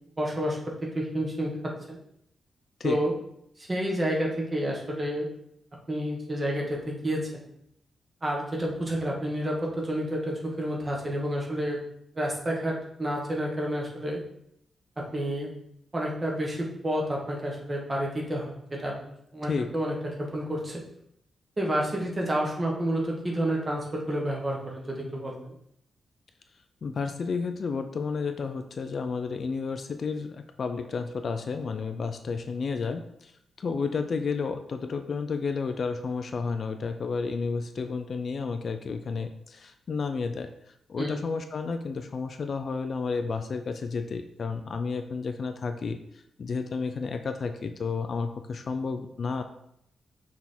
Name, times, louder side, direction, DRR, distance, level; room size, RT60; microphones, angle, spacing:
voice 1, 0.2-2.0 2.8-3.1 3.6-5.3 5.9-7.4 8.2-11.8 12.1-14.2 15.0-15.5 15.9-19.0 19.3-20.8 21.6-25.5 41.0-41.1, right 1 dB, 20° right, -1 dB, 1.3 m, -30 dB
voice 2, 19.4-19.7 26.8-49.4, left 4 dB, 45° left, 7 dB, 0.4 m, -31 dB
6.0 x 3.6 x 4.3 m, 0.74 s
wide cardioid pair, 150°, 0 cm